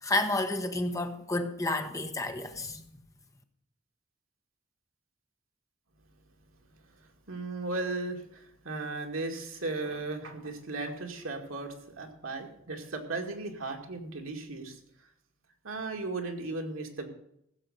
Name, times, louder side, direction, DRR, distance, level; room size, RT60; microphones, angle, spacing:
voice 1, 0.0-3.0, left 2 dB, 15° left, 1.0 m, -31 dB
voice 2, 7.0-14.8 15.6-17.1, right 3 dB, 75° right, 2.2 m, -36 dB
15.5 x 6.8 x 6.5 m
head